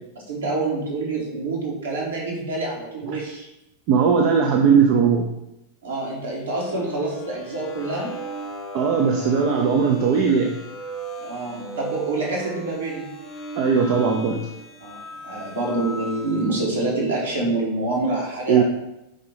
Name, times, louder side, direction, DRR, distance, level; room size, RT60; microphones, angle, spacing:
voice 1, 0.3-3.5 5.8-8.1 11.2-13.1 14.8-18.6, right 2 dB, 70° right, -3 dB, 2.0 m, -27 dB
voice 2, 3.9-5.3 8.7-10.6 13.6-14.4 18.5-18.6, right 6 dB, 45° right, 2 dB, 0.6 m, -18 dB
sound 1, 6.3-16.6, right 2 dB, 25° left, 0.9 m, -36 dB
5.0 x 4.7 x 4.1 m, 0.88 s
figure-of-eight pair, 90°, 0 cm